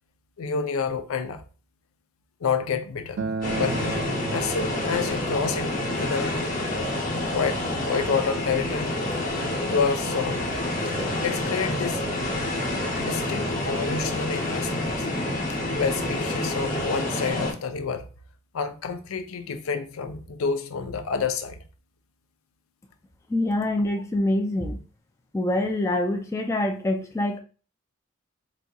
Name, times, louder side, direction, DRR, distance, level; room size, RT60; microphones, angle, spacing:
voice 1, 0.4-1.4 2.4-4.0 4.3-5.7 6.0-6.4 7.3-9.0 9.7-10.6 11.2-12.0 13.0-15.1 15.5-18.1 18.5-21.6, left 5 dB, 85° left, 0.5 m, -29 dB
Acoustic guitar, 3.2-8.4, right 3 dB, 65° right, 0.3 m, -36 dB
sound 1, 3.4-17.5, left 1 dB, 40° left, 0.9 m, -28 dB
voice 2, 23.3-24.8 25.3-27.4, left 1 dB, 15° left, 0.3 m, -25 dB
4.1 x 2.6 x 2.3 m
head